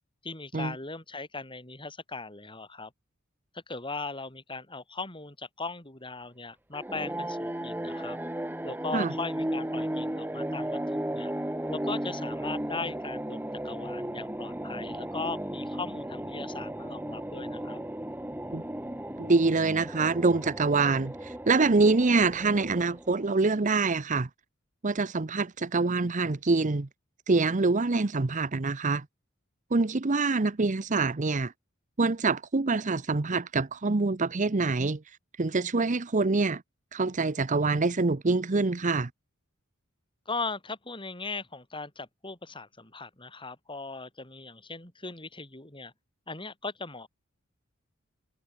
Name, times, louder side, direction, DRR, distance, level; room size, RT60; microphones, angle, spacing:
voice 1, 0.2-2.9 3.5-8.2 8.6-11.3 11.7-17.8 40.3-45.9 46.3-47.1, left 3 dB, 25° left, 7.2 m, -38 dB
Zombie Graboid Death Gasp, 6.7-23.3, right 1 dB, 10° right, 1.9 m, -35 dB
voice 2, 19.2-24.3 24.8-26.9 27.3-29.0 29.7-31.5 32.0-35.0 35.4-36.6 36.9-39.1, right 3 dB, 40° right, 0.8 m, -25 dB
head